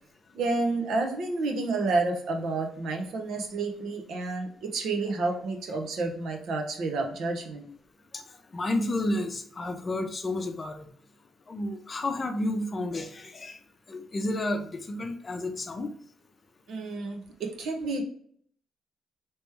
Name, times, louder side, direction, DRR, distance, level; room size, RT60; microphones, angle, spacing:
voice 1, 0.3-7.7 16.7-18.0, right 3 dB, 70° right, 3 dB, 0.8 m, -30 dB
voice 2, 8.5-10.9 11.5-13.6 13.9-15.9, left 1 dB, 35° left, 6 dB, 0.6 m, -31 dB
3.3 x 3.0 x 3.1 m, 0.62 s
cardioid pair, 90°, 0 cm